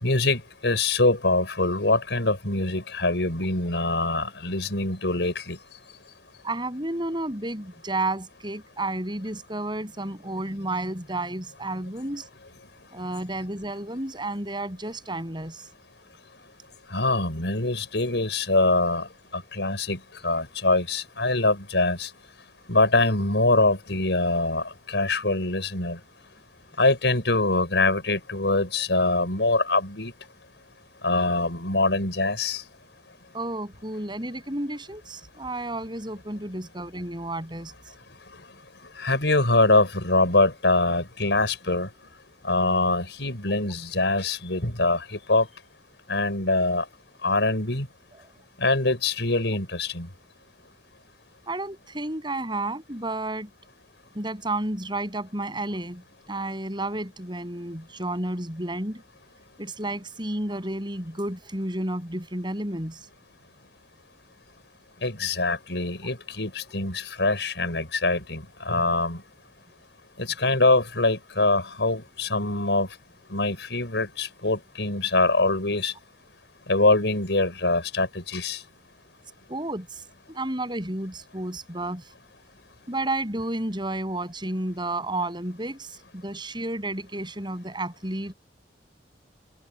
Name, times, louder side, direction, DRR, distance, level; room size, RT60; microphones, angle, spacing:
voice 1, 0.0-5.6 16.9-19.1 19.3-22.1 22.7-26.0 26.8-30.1 31.0-32.6 39.0-41.9 42.4-45.5 46.1-46.8 47.2-47.9 48.6-50.1 65.0-69.2 70.2-72.9 73.3-75.9 76.7-78.6, left 2 dB, 85° left, 5.0 m, -24 dB
voice 2, 6.4-12.3 12.9-15.7 33.3-37.7 48.1-48.3 51.5-53.5 54.1-56.0 56.3-59.0 59.6-63.1 79.5-82.0 82.9-88.3, right 2 dB, 25° right, 7.5 m, -31 dB
open air
head